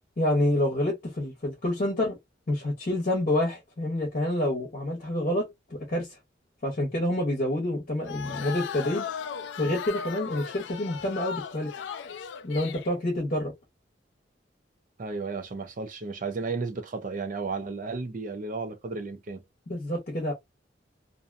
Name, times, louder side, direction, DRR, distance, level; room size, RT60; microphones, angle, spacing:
voice 1, 0.2-2.2 2.5-6.2 6.6-9.1 9.6-11.7 12.4-13.5 19.7-20.3, left 1 dB, 50° left, 0.9 m, -28 dB
sound 1, 8.0-12.9, left 7 dB, 70° left, 0.3 m, -37 dB
voice 2, 15.0-19.4, right 4 dB, 50° right, 0.5 m, -33 dB
2.6 x 2.2 x 2.4 m
head